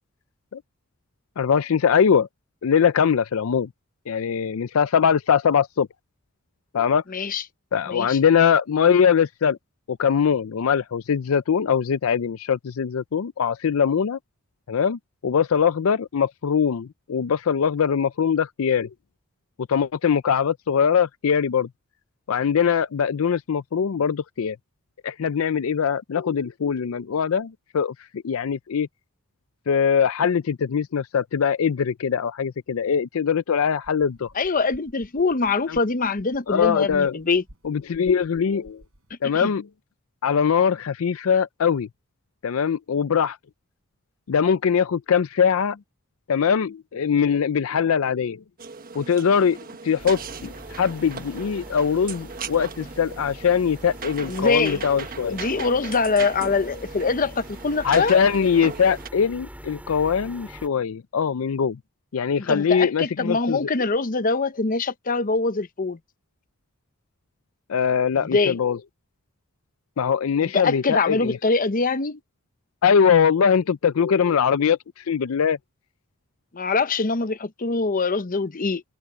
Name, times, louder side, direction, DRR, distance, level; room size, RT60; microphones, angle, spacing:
voice 1, 1.4-2.3 2.6-3.7 4.1-5.9 6.7-7.0 7.7-9.6 9.9-14.2 14.7-18.9 19.7-21.7 22.3-24.6 25.0-28.9 29.7-34.3 35.7-35.8 36.5-37.2 37.6-38.8 39.2-39.6 40.2-41.9 42.4-43.4 44.3-45.8 46.3-48.4 48.9-49.6 49.8-55.4 57.8-61.8 62.1-63.7 67.7-68.8 70.0-71.4 72.8-75.6, left 7 dB, 75° left, 0.4 m, -22 dB
voice 2, 7.1-7.4 7.9-8.2 34.3-37.4 39.3-39.5 54.3-54.8 55.3-58.2 62.4-66.0 68.2-68.6 70.4-72.2 76.5-78.8, left 4 dB, 40° left, 0.8 m, -23 dB
sound 1, 33.8-39.2, right 1 dB, 85° right, 4.5 m, -52 dB
sound 2, 48.6-59.1, right 5 dB, 45° right, 1.2 m, -38 dB
sound 3, 50.0-60.7, equal, 5° right, 4.8 m, -43 dB
head